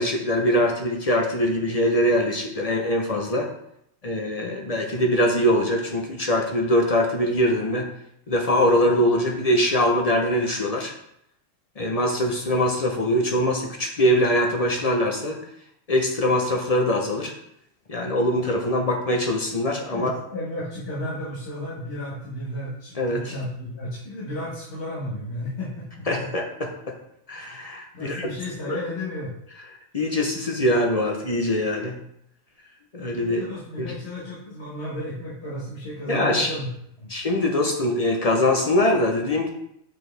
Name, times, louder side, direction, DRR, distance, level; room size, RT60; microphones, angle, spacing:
voice 1, 0.0-3.5 4.0-7.9 8.3-10.9 11.8-15.4 15.9-17.3 17.9-20.1 23.0-23.3 26.1-26.9 27.3-28.3 28.7-28.8 29.9-32.0 32.9-33.4 33.8-33.9 36.1-36.5 37.1-39.5, left 1 dB, 40° left, 1 dB, 0.6 m, -23 dB
voice 2, 19.9-26.3 27.9-29.3 33.1-36.7 37.0-37.1, left 1 dB, 55° left, -8 dB, 1.7 m, -33 dB
6.3 x 4.5 x 3.3 m, 0.75 s
omnidirectional pair, 1.3 m